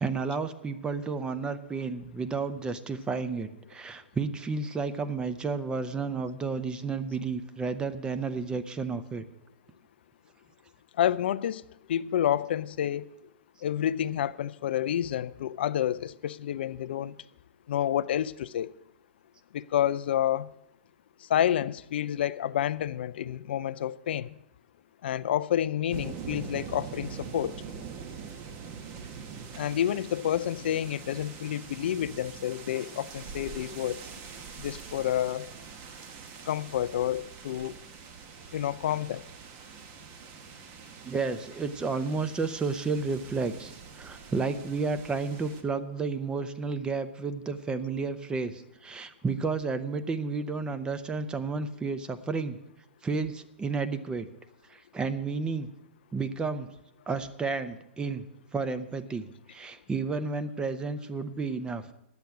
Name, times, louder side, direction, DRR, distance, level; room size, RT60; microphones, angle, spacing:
voice 1, 0.0-9.2 41.0-52.6 53.0-54.3 54.7-55.7 56.1-56.7 57.1-58.3 58.5-61.8, right 4 dB, 15° right, 0.7 m, -32 dB
voice 2, 11.0-11.6 11.9-13.1 13.6-17.1 17.7-18.7 19.5-20.5 21.3-24.3 25.0-27.6 29.5-34.0 34.6-35.5 36.5-37.8 38.5-39.2, left 11 dB, 65° left, 0.4 m, -29 dB
sound 1, 25.9-45.6, right 6 dB, 40° right, 1.3 m, -44 dB
10.5 x 8.0 x 7.1 m
hypercardioid pair, 120°, 6 cm